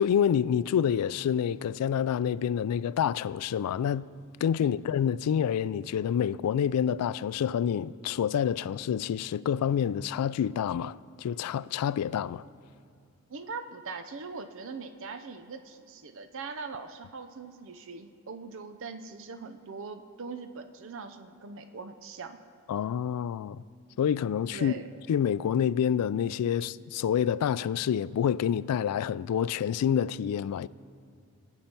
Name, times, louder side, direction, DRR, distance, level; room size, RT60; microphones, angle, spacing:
voice 1, 0.0-4.1 4.4-12.5 22.7-23.6 24.0-24.7 25.1-30.7, left 8 dB, 90° left, 0.3 m, -27 dB
voice 2, 13.3-22.4 24.5-24.9, right 4 dB, 60° right, 0.6 m, -41 dB
21.5 x 8.1 x 4.4 m
head